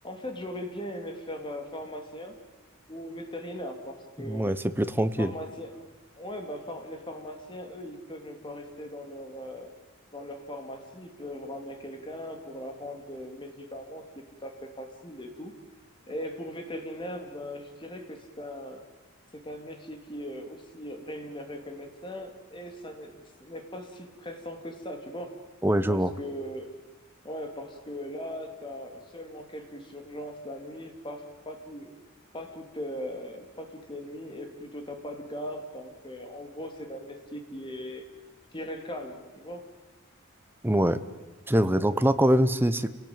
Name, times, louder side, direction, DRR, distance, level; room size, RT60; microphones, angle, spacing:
voice 1, 0.0-2.3 2.9-4.5 5.2-5.8 6.2-9.7 10.1-14.0 14.4-15.5 16.1-18.8 19.3-25.3 25.9-26.7 27.2-31.9 32.3-38.0 38.5-39.7, equal, 25° left, 4 dB, 3.0 m, -39 dB
voice 2, 4.3-5.3 25.6-26.1 40.6-41.0 41.5-42.9, right 1 dB, 10° right, 11 dB, 1.0 m, -23 dB
29.5 x 18.0 x 8.9 m, 1.3 s
head